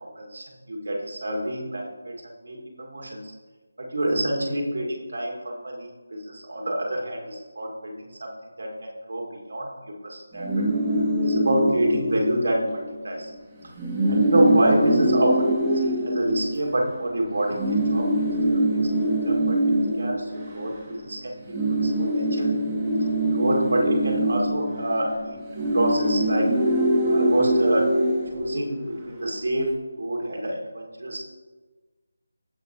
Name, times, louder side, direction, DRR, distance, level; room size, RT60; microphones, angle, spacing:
voice 1, 0.0-2.2 2.4-3.3 3.8-8.3 8.6-10.7 11.2-13.3 14.1-15.5 15.7-18.6 19.3-19.6 20.0-22.6 23.3-26.5 27.1-28.0 28.3-31.2, right 1 dB, 60° right, -1 dB, 2.1 m, -27 dB
sound 1, 10.3-12.9 13.2-13.4 13.6-17.0 17.6-21.1 21.4-29.0, right 1 dB, 15° right, 1.4 m, -24 dB
15.5 x 5.8 x 3.0 m, 1.3 s
figure-of-eight pair, 160°, 0 cm